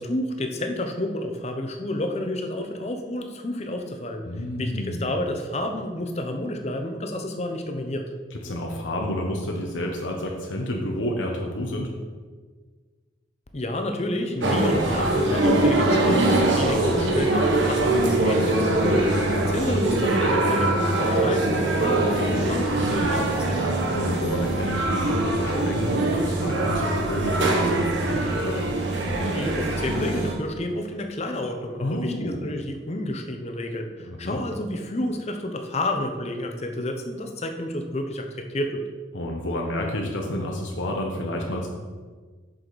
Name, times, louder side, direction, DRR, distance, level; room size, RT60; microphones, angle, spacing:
voice 1, 0.0-4.2 4.6-8.0 13.5-23.7 29.3-38.8, left 1 dB, 35° left, 5 dB, 0.7 m, -30 dB
voice 2, 4.2-5.0 8.4-11.9 18.9-19.6 23.9-28.6 31.8-32.4 34.1-34.4 39.1-41.7, left 1 dB, 85° left, 0 dB, 1.0 m, -29 dB
sound 1, 14.4-30.3, right 2 dB, 80° right, 1.2 m, -23 dB
7.7 x 6.4 x 4.0 m, 1.5 s
head